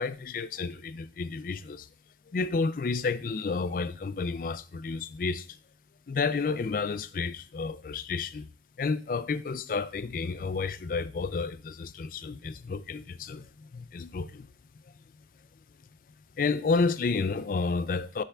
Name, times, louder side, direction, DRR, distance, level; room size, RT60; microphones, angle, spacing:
voice 1, 0.0-1.9 2.3-5.5 6.1-8.5 8.8-14.5 16.4-18.2, left 4 dB, 50° left, 0.4 m, -31 dB
9.7 x 3.6 x 3.4 m
head